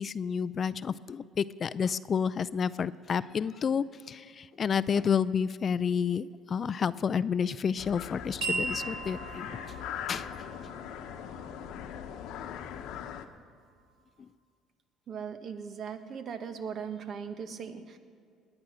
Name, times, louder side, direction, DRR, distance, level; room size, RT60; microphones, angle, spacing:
voice 1, 0.0-9.5 10.1-10.3 12.8-12.9 14.2-14.3, left 7 dB, 40° left, 16 dB, 0.4 m, -30 dB
sound 1, 7.8-13.3, left 9 dB, 75° left, 0.9 m, -40 dB
sound 2, 8.4-13.0, right 3 dB, 85° right, 4.1 m, -39 dB
voice 2, 15.1-18.0, right 6 dB, 50° right, 8 dB, 1.3 m, -39 dB
19.5 x 9.8 x 6.2 m, 2.2 s
cardioid pair, 105°, 0 cm